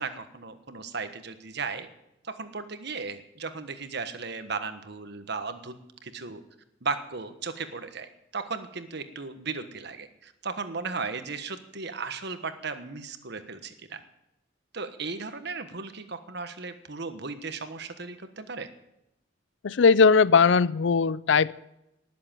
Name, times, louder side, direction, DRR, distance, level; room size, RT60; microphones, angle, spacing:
voice 1, 0.0-1.9 2.2-6.4 6.8-14.0 14.7-18.7, right 4 dB, 60° right, 10 dB, 1.4 m, -36 dB
voice 2, 19.6-21.5, left 5 dB, 70° left, 20 dB, 0.5 m, -19 dB
19.0 x 7.7 x 9.1 m, 0.85 s
head